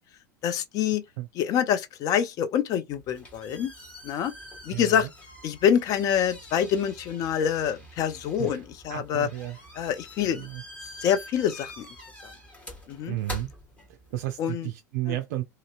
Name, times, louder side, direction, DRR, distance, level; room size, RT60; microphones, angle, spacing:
voice 1, 0.4-1.0 1.3-3.7 4.0-4.3 4.7-5.1 5.4-9.3 9.8-10.5 11.0-11.9 12.2-12.3 12.9-13.2 14.4-14.7 15.1-15.2, left 9 dB, 35° left, 0.5 m, -26 dB
sound 1, 2.9-14.3, equal, 15° left, 1.7 m, -45 dB
voice 2, 4.7-5.1 8.4-8.6 8.9-9.6 10.3-10.6 13.1-13.5 14.1-15.4, right 15 dB, 55° right, 0.4 m, -32 dB
2.9 x 2.7 x 2.3 m
figure-of-eight pair, 85°, 10 cm